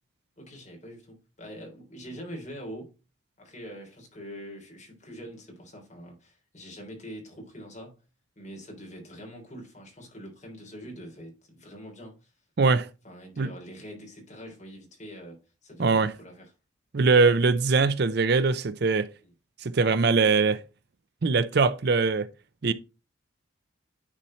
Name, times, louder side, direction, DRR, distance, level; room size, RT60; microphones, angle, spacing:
voice 1, 0.4-3.0 3.4-8.0 8.4-12.3 13.0-16.5 19.2-19.3, equal, 35° left, 3.1 m, -44 dB
voice 2, 12.6-12.9 13.4-13.5 15.8-16.1 16.9-19.1 19.6-20.6 21.2-22.3 22.6-22.7, right 4 dB, 55° right, 0.5 m, -22 dB
9.9 x 4.3 x 4.3 m
head